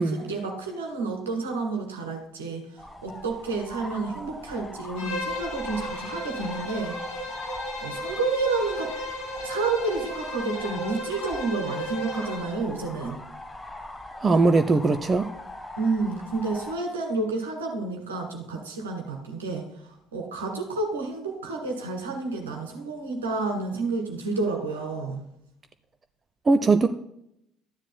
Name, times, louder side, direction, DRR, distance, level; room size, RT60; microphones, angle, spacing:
voice 1, 0.0-7.3 7.8-8.9 9.4-13.2 15.8-19.7 20.1-25.2, right 3 dB, 75° right, 1.8 m, -30 dB
sound 1, 2.8-16.8, left 1 dB, 15° left, 1.1 m, -41 dB
Bowed string instrument, 5.0-12.6, left 1 dB, 60° left, 2.0 m, -34 dB
voice 2, 14.2-15.3 26.5-26.9, right 3 dB, 25° right, 0.5 m, -20 dB
13.0 x 9.9 x 2.2 m
figure-of-eight pair, 55°, 0 cm